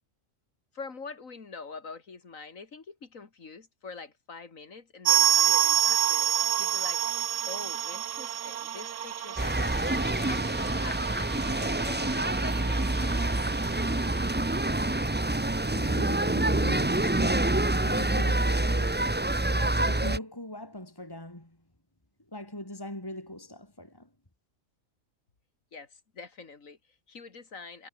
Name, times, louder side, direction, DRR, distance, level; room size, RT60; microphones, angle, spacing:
voice 1, 0.7-13.5 25.7-27.9, left 4 dB, 80° left, 2.7 m, -45 dB
sound 1, 5.0-15.6 15.8-15.9 16.2-16.3 16.9-17.0, right 10 dB, 70° right, 1.2 m, -29 dB
sound 2, 9.4-20.2, right 1 dB, 10° right, 0.7 m, -27 dB
voice 2, 15.6-21.6 22.3-24.1, left 1 dB, 15° left, 3.6 m, -41 dB
omnidirectional pair, 1.4 m